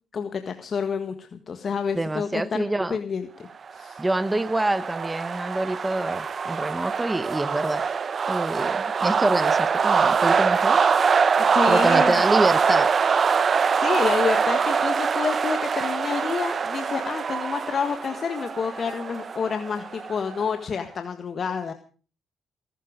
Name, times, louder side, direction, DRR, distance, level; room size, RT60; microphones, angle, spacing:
voice 1, 0.1-2.6 2.9-4.0 11.5-12.1 13.7-21.7, left 6 dB, 50° left, 8 dB, 1.7 m, -29 dB
voice 2, 1.9-3.0 4.0-7.8 8.3-10.8 11.7-12.9, right 2 dB, 15° right, 14 dB, 1.2 m, -26 dB
sound 1, 3.8-20.5, right 6 dB, 45° right, 1.0 m, -23 dB
20.0 x 12.5 x 5.2 m, 0.40 s
cardioid pair, 90°, 0 cm